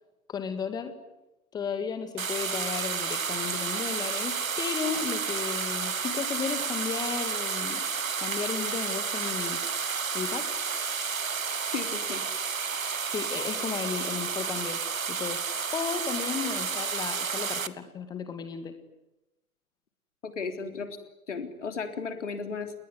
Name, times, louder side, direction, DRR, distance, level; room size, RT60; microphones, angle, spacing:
voice 1, 0.3-1.0 1.5-7.8 8.2-9.6 10.1-10.5 13.1-14.8 15.1-15.5 15.7-18.7, left 6 dB, 10° left, 9 dB, 2.1 m, -34 dB
sound 1, 2.2-17.7, right 5 dB, 70° right, 1.5 m, -31 dB
voice 2, 11.7-12.2 20.2-21.0 21.3-22.7, left 5 dB, 55° left, 7 dB, 3.7 m, -34 dB
29.5 x 21.0 x 9.8 m, 0.95 s
figure-of-eight pair, 130°, 42 cm